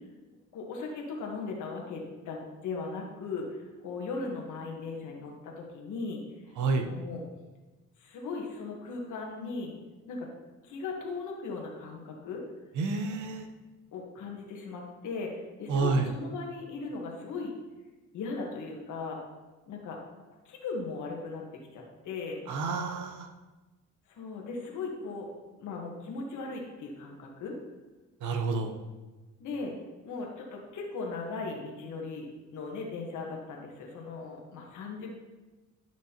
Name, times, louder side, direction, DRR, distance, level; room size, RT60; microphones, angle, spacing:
voice 1, 0.5-6.2 6.8-7.2 8.0-9.7 10.1-10.3 10.6-12.4 13.9-17.5 18.1-19.2 19.7-20.0 20.4-21.4 21.7-22.4 24.1-25.3 25.6-27.6 29.4-29.7 30.0-32.3 32.5-35.1, left 4 dB, 80° left, 0 dB, 1.4 m, -38 dB
voice 2, 6.6-6.9 12.8-13.5 15.7-16.1 22.5-23.3 28.2-28.8, right 4 dB, 75° right, 6 dB, 0.9 m, -29 dB
10.5 x 6.1 x 2.9 m, 1.2 s
cardioid pair, 90°, 30 cm